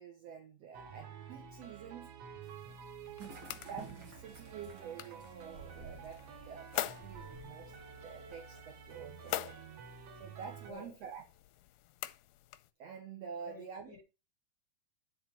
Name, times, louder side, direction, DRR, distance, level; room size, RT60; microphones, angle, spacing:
voice 1, 0.0-2.1 2.7-2.8 3.3-7.8 8.0-9.6 10.2-11.2 12.8-13.9, right 6 dB, 75° right, 1.5 m, -48 dB
sound 1, 0.7-10.7, right 6 dB, 60° right, 1.8 m, -51 dB
sound 2, 2.4-12.7, left 15 dB, 90° left, 2.5 m, -46 dB
sound 3, 3.2-8.3, right 3 dB, 35° right, 2.2 m, -53 dB
voice 2, 10.6-11.0 13.4-14.0, left 4 dB, 70° left, 1.1 m, -53 dB
10.5 x 4.5 x 4.4 m
omnidirectional pair, 4.4 m